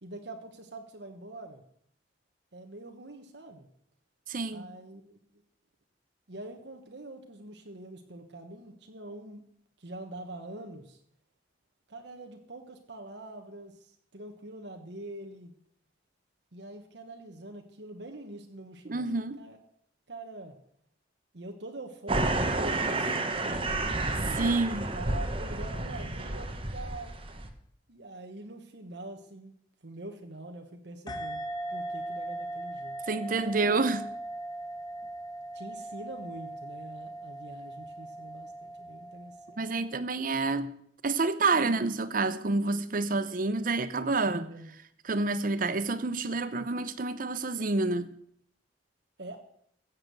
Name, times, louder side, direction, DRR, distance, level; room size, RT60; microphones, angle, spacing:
voice 1, 0.0-1.6 2.5-3.7 4.5-5.2 6.3-9.4 9.8-11.0 11.9-15.5 16.5-19.6 20.1-20.6 21.3-23.6 24.1-27.1 27.9-29.5 29.8-33.7 35.5-39.6 44.2-44.7 49.2-49.4, right 2 dB, 70° right, 1.4 m, -44 dB
voice 2, 4.3-4.7 18.9-19.4 24.3-24.8 33.1-34.0 39.6-40.7 41.0-44.5 45.0-48.1, right 3 dB, 50° right, 0.7 m, -28 dB
sound 1, 22.1-27.5, right 2 dB, 30° right, 1.4 m, -30 dB
sound 2, 31.1-40.1, right 1 dB, 25° left, 1.2 m, -39 dB
15.5 x 7.6 x 8.0 m
head